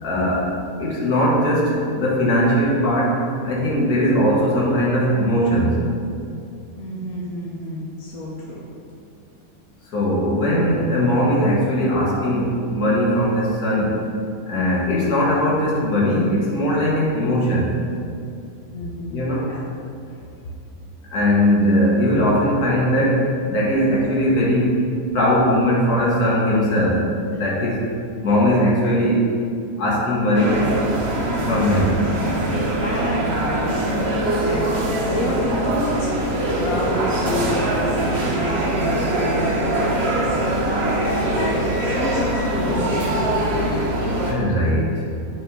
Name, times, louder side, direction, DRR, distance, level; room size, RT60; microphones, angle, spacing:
voice 1, 0.0-0.5 0.8-5.8 9.9-13.9 14.5-17.7 19.1-19.5 21.1-24.7 25.1-27.0 27.3-27.8 28.2-29.3 29.8-30.7 31.5-32.1 32.5-32.7 44.3-45.0, equal, 90° left, -5 dB, 2.0 m, -19 dB
voice 2, 6.8-8.7 18.7-19.2 19.5-19.6 27.3-27.5 32.1-36.1 36.5-39.6 40.0-43.8, left 1 dB, 70° left, -4 dB, 1.3 m, -30 dB
sound 1, 30.3-44.3, right 1 dB, 50° right, 1.1 m, -22 dB
7.6 x 4.2 x 4.9 m, 2.5 s
omnidirectional pair, 1.6 m